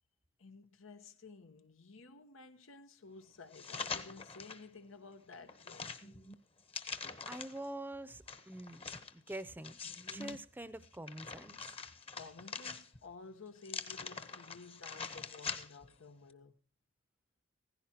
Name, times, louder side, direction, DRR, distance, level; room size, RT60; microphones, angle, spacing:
voice 1, 0.4-5.9 12.1-16.5, left 3 dB, 90° left, 1.1 m, -53 dB
sound 1, 3.5-4.7 5.1-7.7 8.3-10.4 10.8-13.1 13.6-15.9 16.3-16.4, left 5 dB, 30° left, 1.0 m, -44 dB
voice 2, 7.3-9.8 10.1-11.6, right 1 dB, 10° right, 0.6 m, -45 dB
16.5 x 15.5 x 2.9 m
head